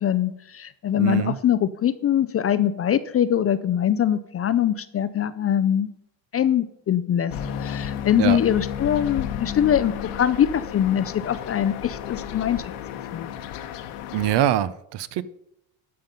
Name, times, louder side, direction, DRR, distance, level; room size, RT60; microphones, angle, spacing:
voice 1, 0.0-5.9 6.3-7.3 7.6-12.6 13.1-13.3, left 10 dB, 30° left, 13 dB, 0.4 m, -23 dB
voice 2, 1.0-1.4 8.2-8.4 14.1-15.2, right 12 dB, 55° right, 16 dB, 0.8 m, -23 dB
sound 1, 7.3-14.4, left 9 dB, 90° left, 1.3 m, -33 dB
13.0 x 5.8 x 5.3 m, 0.80 s
cardioid pair, 120°, 49 cm